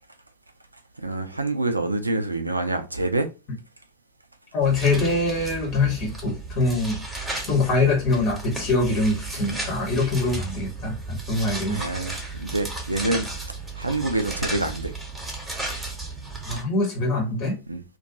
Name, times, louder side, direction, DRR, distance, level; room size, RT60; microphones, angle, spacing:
voice 1, 1.0-3.3 9.5-9.6 11.7-13.3 13.7-14.9 17.7-17.8, right 2 dB, 85° right, 0.4 m, -26 dB
voice 2, 4.5-7.0 7.5-11.9 12.2-12.4 16.5-17.6, left 2 dB, 40° left, 0.8 m, -24 dB
sound 1, 4.6-16.6, right 2 dB, 5° right, 0.9 m, -34 dB
2.5 x 2.2 x 2.5 m
figure-of-eight pair, 90°, 0 cm